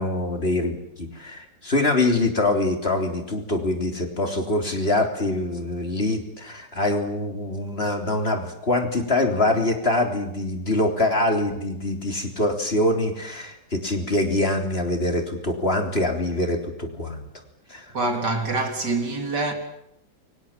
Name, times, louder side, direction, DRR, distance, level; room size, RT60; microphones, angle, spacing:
voice 1, 0.0-17.3 17.7-17.9, left 2 dB, 35° left, 3.7 m, -24 dB
voice 2, 17.9-19.5, right 3 dB, 70° right, 4.3 m, -25 dB
29.0 x 25.0 x 7.4 m
omnidirectional pair, 1.9 m